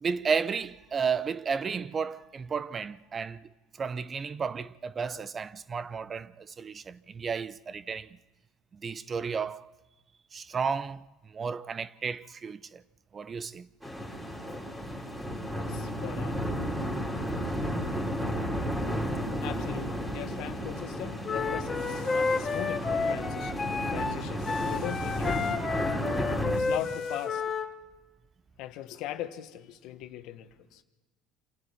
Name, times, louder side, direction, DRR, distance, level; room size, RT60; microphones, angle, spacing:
voice 1, 0.0-3.4 3.8-8.1 8.7-9.7 10.3-11.0 11.3-12.8 13.1-13.7, right 5 dB, 30° right, 0.6 m, -33 dB
sound 1, 13.8-26.6, equal, 5° right, 4.2 m, -33 dB
voice 2, 15.5-16.4 19.4-23.5 23.9-25.6 26.5-27.4 28.6-30.5, left 12 dB, 65° left, 1.4 m, -39 dB
Wind instrument woodwind instrument, 21.2-27.7, left 4 dB, 25° left, 1.8 m, -31 dB
26.5 x 12.5 x 9.7 m
supercardioid pair, 100°, 0 cm